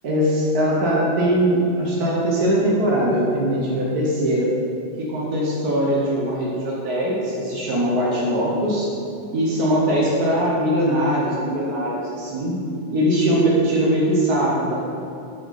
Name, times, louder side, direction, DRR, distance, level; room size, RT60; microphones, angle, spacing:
voice 1, 0.0-4.5 5.0-8.9 9.3-12.6 12.9-14.8, equal, 80° right, -5 dB, 0.8 m, -21 dB
7.9 x 7.7 x 4.1 m, 2.8 s
omnidirectional pair, 3.7 m